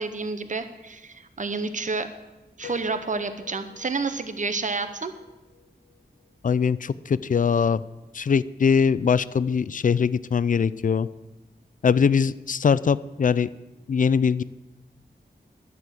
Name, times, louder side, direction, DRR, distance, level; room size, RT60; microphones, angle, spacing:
voice 1, 0.0-2.1 2.6-5.1, right 4 dB, 45° right, 10 dB, 0.9 m, -29 dB
Piano, 2.6-6.4, left 8 dB, 75° left, 1.2 m, -47 dB
voice 2, 6.4-7.8 8.1-11.1 11.8-13.5 13.9-14.4, left 6 dB, 50° left, 18 dB, 0.4 m, -22 dB
11.5 x 7.0 x 7.6 m, 1.1 s
wide cardioid pair, 105°, 17 cm